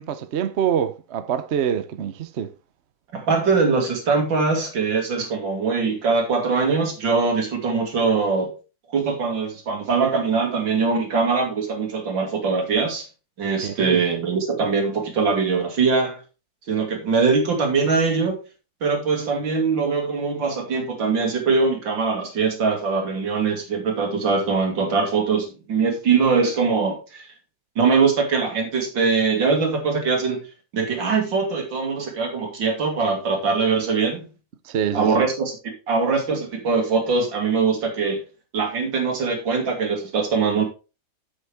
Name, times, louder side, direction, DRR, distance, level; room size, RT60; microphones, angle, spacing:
voice 1, 0.0-2.5 13.6-14.0 34.6-35.3, right 9 dB, 55° right, 0.8 m, -25 dB
voice 2, 3.1-8.5 8.9-13.1 13.4-16.2 16.7-18.4 18.8-27.3 27.8-30.4 30.7-34.3 34.9-35.5 35.9-38.2 38.5-40.6, right 4 dB, 85° right, 3.0 m, -22 dB
8.1 x 8.1 x 3.4 m
omnidirectional pair, 2.0 m